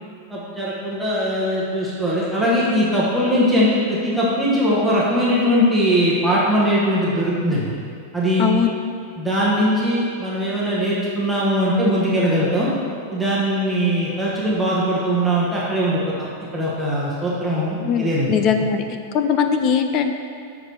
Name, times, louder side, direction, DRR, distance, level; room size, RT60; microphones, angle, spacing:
voice 1, 0.3-7.7 8.1-8.5 9.2-12.7 13.1-16.3 16.5-18.3, equal, 5° right, -8 dB, 1.0 m, -20 dB
voice 2, 8.4-8.8 17.8-20.1, left 7 dB, 30° left, 7 dB, 0.4 m, -21 dB
6.5 x 4.8 x 5.3 m, 2.4 s
supercardioid pair, 165°, 0 cm